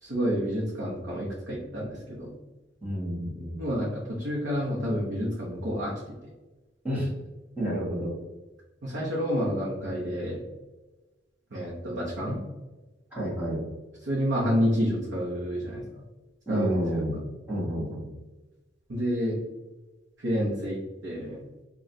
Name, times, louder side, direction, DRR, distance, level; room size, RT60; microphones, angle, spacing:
voice 1, 0.0-2.3 3.6-5.9 8.8-10.4 11.5-12.4 14.0-16.0 16.5-17.0 18.9-19.4 20.2-21.5, equal, 65° right, -5 dB, 0.9 m, -29 dB
voice 2, 2.8-3.6 6.8-7.1 7.6-8.1 13.1-13.6 16.5-17.2 17.5-18.0, equal, 10° right, -8 dB, 1.3 m, -29 dB
5.1 x 2.4 x 2.7 m, 1.1 s
head